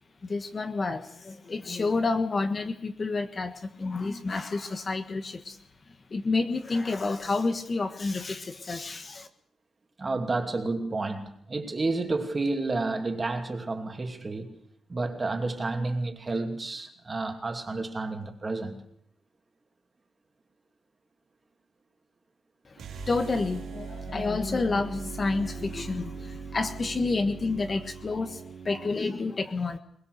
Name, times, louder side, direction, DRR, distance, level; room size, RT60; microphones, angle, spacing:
voice 1, 0.2-5.6 6.1-9.3 22.7-22.8 23.1-29.8, left 3 dB, 25° left, 1.4 m, -29 dB
voice 2, 10.0-14.6 14.9-18.8, right 3 dB, 20° right, 2.6 m, -30 dB
sound 1, 22.8-29.0, right 5 dB, 80° right, 4.2 m, -40 dB
23.5 x 22.0 x 6.7 m
wide cardioid pair, 180°, 0 cm